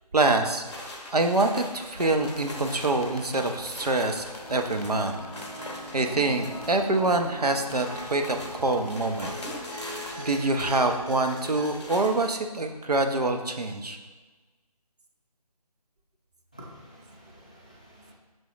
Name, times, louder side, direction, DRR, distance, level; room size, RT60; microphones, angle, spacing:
voice 1, 0.1-0.6 1.1-5.1 5.6-9.3 10.2-14.0, right 2 dB, 70° right, 5 dB, 0.9 m, -25 dB
sound 1, 0.6-12.3, left 1 dB, 45° left, 1.4 m, -42 dB
sound 2, 2.0-10.5, left 2 dB, 65° left, 1.1 m, -46 dB
sound 3, 4.4-11.7, equal, 25° right, 1.1 m, -41 dB
voice 2, 16.5-18.1, equal, 10° left, -4 dB, 0.4 m, -49 dB
6.5 x 6.4 x 3.2 m, 1.3 s
figure-of-eight pair, 155°, 20 cm